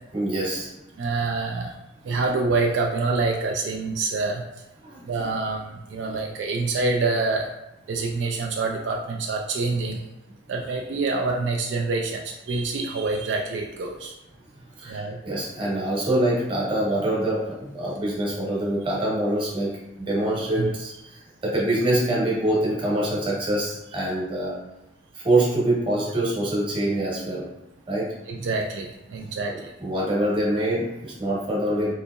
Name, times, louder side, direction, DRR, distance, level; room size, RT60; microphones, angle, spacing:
voice 1, 0.1-0.7 4.8-5.2 6.1-6.2 14.8-24.5 25.1-27.5 27.9-28.1 29.5-31.9, right 1 dB, 25° right, -6 dB, 1.0 m, -25 dB
voice 2, 1.0-1.8 2.0-4.4 5.1-7.5 7.9-10.0 10.5-14.1 14.9-15.2 20.6-20.7 28.3-29.7, right 3 dB, 75° right, 1 dB, 0.3 m, -26 dB
3.8 x 2.7 x 2.3 m, 0.92 s
head